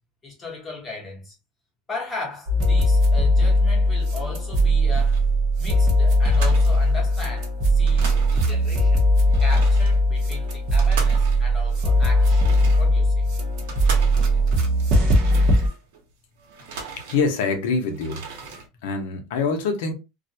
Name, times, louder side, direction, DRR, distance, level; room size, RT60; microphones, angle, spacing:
voice 1, 0.2-1.3 1.9-5.2 5.6-9.1 9.4-13.3, left 3 dB, 10° left, 0.9 m, -37 dB
sound 1, 2.5-15.7, equal, 40° right, 0.7 m, -19 dB
sound 2, 4.9-5.4 5.8-5.9 6.2-7.4 7.7-8.8 9.2-16.0 16.4-17.6 17.9-18.7, right 4 dB, 85° right, 1.0 m, -38 dB
voice 2, 17.1-18.3 18.8-19.9, left 4 dB, 70° left, 0.7 m, -24 dB
2.4 x 2.1 x 2.7 m
cardioid pair, 180°, 0 cm